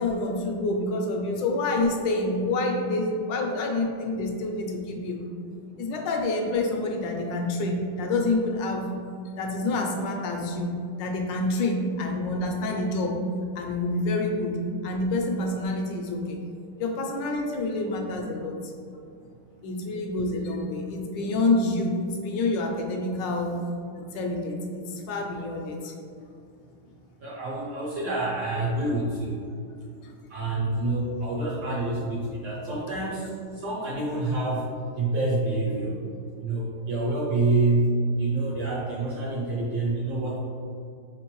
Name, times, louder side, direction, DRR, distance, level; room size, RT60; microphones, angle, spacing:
voice 1, 0.0-5.2 5.8-9.0 9.4-10.7 11.0-13.2 13.6-14.6 14.8-16.4 16.8-18.7 19.6-23.6 24.0-25.9 30.0-30.1, left 2 dB, 75° left, 2 dB, 1.0 m, -27 dB
voice 2, 27.2-29.4 30.3-36.0 36.4-40.4, right 2 dB, 70° right, -5 dB, 1.0 m, -27 dB
4.4 x 3.7 x 3.0 m, 2.4 s
omnidirectional pair, 2.4 m